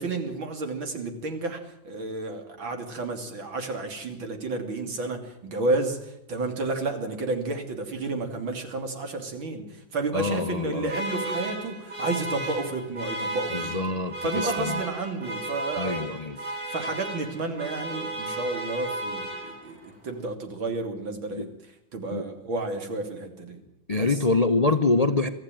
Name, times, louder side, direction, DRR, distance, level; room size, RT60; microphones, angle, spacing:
voice 1, 0.0-13.8 14.2-21.5 21.9-23.6 23.9-24.2, right 3 dB, 70° right, 5 dB, 3.6 m, -31 dB
voice 2, 10.1-10.9 13.5-14.7 15.8-16.4 21.3-21.5 22.1-22.2 23.9-25.3, left 3 dB, 55° left, 10 dB, 0.4 m, -25 dB
sound 1, 10.9-19.9, right 1 dB, 45° right, 4.3 m, -34 dB
23.5 x 14.5 x 9.2 m, 0.80 s
omnidirectional pair, 2.2 m